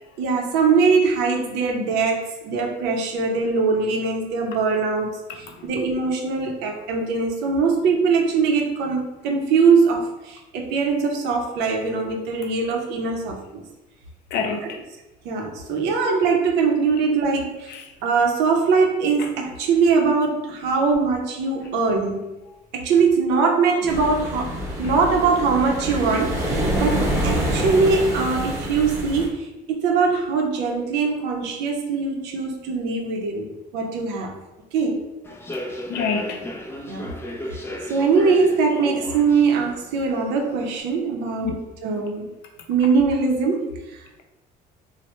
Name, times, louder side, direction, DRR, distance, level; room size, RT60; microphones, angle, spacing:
voice 1, 0.2-13.6 14.6-14.7 15.2-17.7 18.0-22.3 22.7-34.3 34.7-35.0 36.9-37.1 37.9-41.6 41.8-42.3 42.7-44.0, right 4 dB, 90° right, 2 dB, 0.6 m, -22 dB
voice 2, 14.3-14.8 17.7-17.8 19.2-19.3 24.8-25.0 35.9-36.4 41.4-41.5, left 5 dB, 75° left, 3 dB, 0.5 m, -27 dB
sound 1, 23.9-29.3, equal, 15° right, 0.9 m, -26 dB
Human voice / Subway metro underground, 35.2-40.8, equal, 15° left, 0.4 m, -35 dB
3.0 x 2.1 x 3.1 m, 1.0 s
cardioid pair, 110°, 17 cm